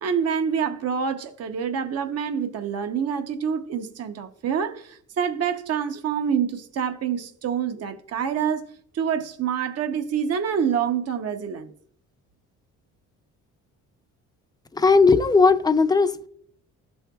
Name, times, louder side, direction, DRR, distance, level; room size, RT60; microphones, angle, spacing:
voice 1, 0.0-8.6 8.9-11.7, right 7 dB, 55° right, 0.8 m, -26 dB
voice 2, 14.7-16.3, left 4 dB, 15° left, 0.5 m, -17 dB
12.5 x 4.5 x 2.3 m
cardioid pair, 90°, 30 cm